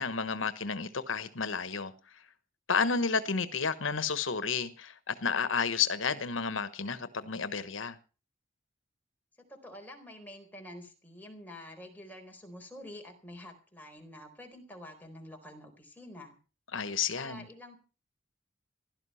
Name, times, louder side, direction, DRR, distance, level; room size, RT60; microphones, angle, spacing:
voice 1, 0.0-1.9 2.7-8.0 16.7-17.5, left 5 dB, 85° left, 1.2 m, -31 dB
voice 2, 9.4-16.4 17.1-17.8, left 1 dB, 10° left, 4.2 m, -48 dB
16.5 x 12.0 x 5.7 m
head